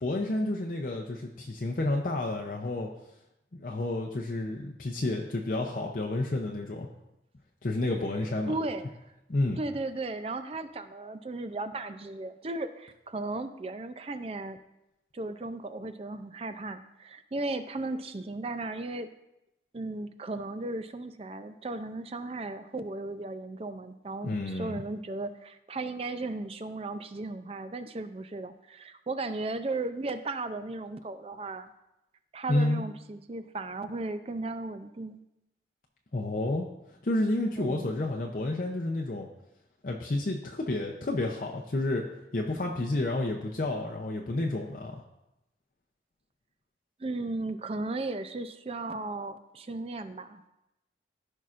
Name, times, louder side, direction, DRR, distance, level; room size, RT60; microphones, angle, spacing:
voice 1, 0.0-2.9 3.6-6.9 7.6-8.5 9.3-9.6 24.2-24.8 32.5-32.8 36.1-39.3 39.8-42.1 42.3-44.9, left 2 dB, 50° left, 0 dB, 0.6 m, -30 dB
voice 2, 8.5-8.9 9.6-14.6 15.1-19.1 19.7-31.7 32.3-35.2 37.6-37.9 47.0-50.4, right 2 dB, 35° right, 10 dB, 0.4 m, -36 dB
15.0 x 5.4 x 2.5 m, 0.90 s
head